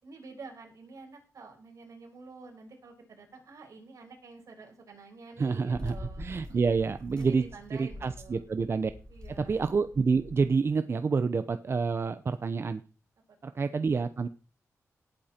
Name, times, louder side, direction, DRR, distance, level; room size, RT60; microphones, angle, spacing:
voice 1, 0.0-6.6 7.2-8.4 9.1-9.6 13.4-13.6, right 4 dB, 75° right, 2 dB, 5.3 m, -49 dB
voice 2, 5.4-7.4 7.7-8.9 9.4-12.8 13.4-14.3, right 5 dB, 45° right, 11 dB, 0.8 m, -28 dB
sound 1, 5.7-10.6, left 1 dB, 15° left, 4.9 m, -45 dB
18.0 x 8.8 x 4.5 m, 0.36 s
wide cardioid pair, 105°, 6 cm